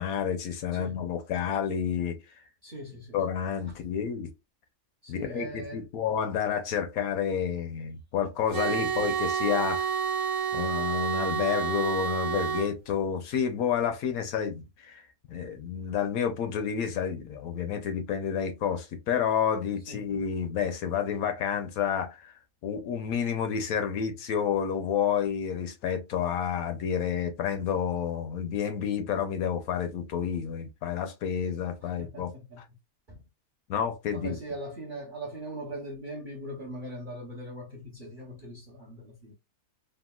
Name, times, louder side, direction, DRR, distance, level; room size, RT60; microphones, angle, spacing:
voice 1, 0.0-2.2 3.1-4.3 5.1-9.9 10.5-22.3 22.6-32.3 33.7-34.3, left 8 dB, 70° left, 1.0 m, -30 dB
voice 2, 0.7-1.0 2.6-3.2 5.0-5.9 8.6-9.1 19.9-20.1 31.8-32.6 33.1-33.2 34.1-39.3, right 1 dB, 50° right, 0.6 m, -40 dB
sound 1, 8.5-12.7, right 7 dB, 75° right, 1.1 m, -29 dB
3.6 x 2.1 x 2.2 m
omnidirectional pair, 1.7 m